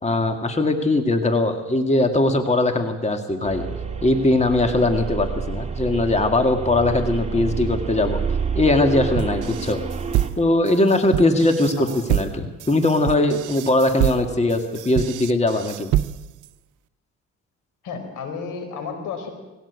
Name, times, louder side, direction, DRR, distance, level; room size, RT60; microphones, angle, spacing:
voice 1, 0.0-3.7 4.0-8.2 8.5-9.8 10.4-15.9, left 2 dB, 20° left, 5 dB, 2.2 m, -20 dB
sound 1, 3.4-10.3, right 5 dB, 20° right, 2.2 m, -28 dB
sound 2, 9.2-16.5, right 13 dB, 85° right, 0.7 m, -26 dB
voice 2, 17.8-19.3, left 5 dB, 90° left, 6 dB, 4.5 m, -32 dB
20.0 x 17.0 x 8.3 m, 1.1 s
cardioid pair, 90°, 30 cm